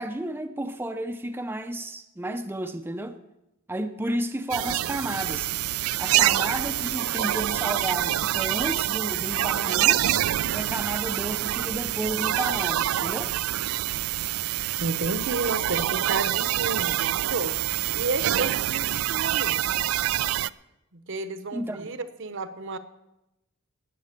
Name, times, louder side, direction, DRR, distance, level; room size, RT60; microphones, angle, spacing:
voice 1, 0.0-3.2 3.7-5.5 6.0-10.1 10.5-13.3 21.5-21.9, right 1 dB, 10° right, 0.5 m, -32 dB
sound 1, 4.5-20.5, right 13 dB, 80° right, 0.4 m, -26 dB
voice 2, 14.8-19.7 20.9-22.8, right 3 dB, 60° right, 1.0 m, -32 dB
18.5 x 7.6 x 6.7 m
head